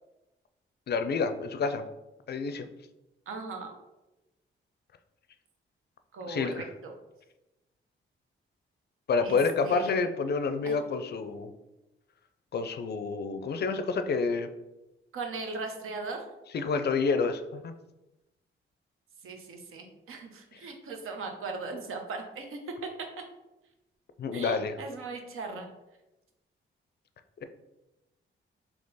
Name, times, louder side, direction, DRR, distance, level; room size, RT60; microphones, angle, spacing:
voice 1, 0.9-1.9 2.3-2.7 6.3-6.7 9.1-11.5 12.5-14.5 16.5-17.7 20.5-20.6 24.2-24.8, left 4 dB, 50° left, 9 dB, 0.4 m, -28 dB
voice 2, 3.3-3.7 6.1-6.9 9.2-9.4 9.6-9.9 10.6-10.8 15.1-16.2 19.2-22.7 24.3-25.7, right 3 dB, 80° right, 3 dB, 0.8 m, -38 dB
3.7 x 2.8 x 4.0 m, 0.98 s
cardioid pair, 115°, 21 cm